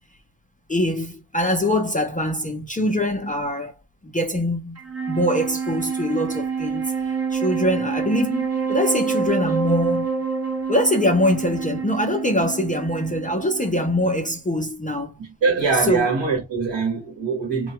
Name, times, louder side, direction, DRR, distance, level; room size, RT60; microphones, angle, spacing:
voice 1, 0.7-3.7 4.0-4.8 5.1-6.9 7.3-10.1 10.7-15.1 15.7-16.1, left 1 dB, 20° left, 0.4 m, -23 dB
Wind instrument woodwind instrument, 4.8-14.3, right 5 dB, 35° right, 0.6 m, -27 dB
voice 2, 15.2-17.7, right 4 dB, 70° right, 1.1 m, -23 dB
2.2 x 2.1 x 2.7 m
wide cardioid pair, 140°, 44 cm